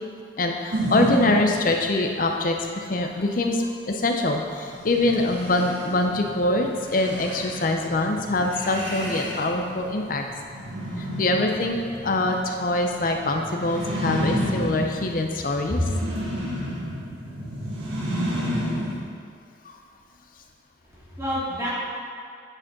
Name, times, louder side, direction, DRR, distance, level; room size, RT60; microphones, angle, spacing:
voice 1, 0.4-10.2 11.0-15.9 19.6-19.8, left 2 dB, 45° left, 3 dB, 0.6 m, -24 dB
sound 1, 0.7-2.0 4.6-19.0, equal, 90° right, 1.5 m, -31 dB
voice 2, 20.9-21.7, left 1 dB, 15° right, -9 dB, 2.2 m, -28 dB
8.9 x 4.8 x 5.9 m, 2.3 s
head